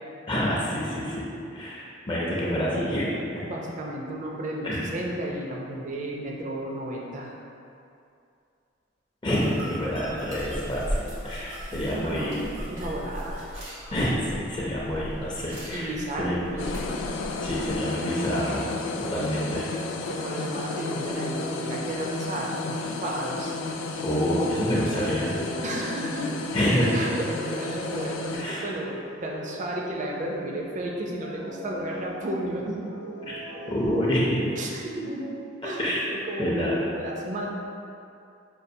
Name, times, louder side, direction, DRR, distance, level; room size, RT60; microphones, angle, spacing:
voice 1, 0.3-3.4 4.6-4.9 9.2-10.9 11.2-12.4 13.9-15.9 16.2-16.4 17.4-18.7 19.0-19.7 24.0-25.4 26.5-27.0 28.3-28.7 33.3-33.4 33.7-34.5 35.8-36.0 36.4-36.8, equal, 25° left, -5 dB, 0.5 m, -27 dB
voice 2, 3.4-7.3 11.7-13.4 15.7-16.9 20.0-23.5 25.6-26.3 26.9-32.8 33.5-33.6 34.6-35.3 35.6-37.5, right 1 dB, 40° right, -2 dB, 0.5 m, -33 dB
sound 1, 9.3-17.8, equal, 90° right, 1.3 m, -37 dB
sound 2, 16.6-28.4, left 3 dB, 80° left, 0.3 m, -33 dB
sound 3, 18.8-36.0, right 1 dB, 65° right, 0.8 m, -42 dB
5.2 x 2.4 x 2.6 m, 2.5 s
head